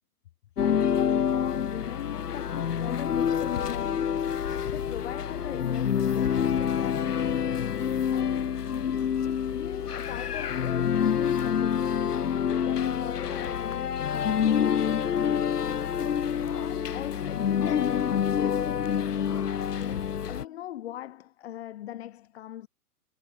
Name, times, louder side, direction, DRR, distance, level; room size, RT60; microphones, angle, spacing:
sound 1, 0.6-20.4, left 8 dB, 75° left, 1.9 m, -27 dB
voice 1, 0.6-4.2 4.7-7.4 8.1-12.0 12.6-15.7 16.5-19.0 19.8-22.7, left 13 dB, 40° left, 5.5 m, -40 dB
hypercardioid pair, 160°, 47 cm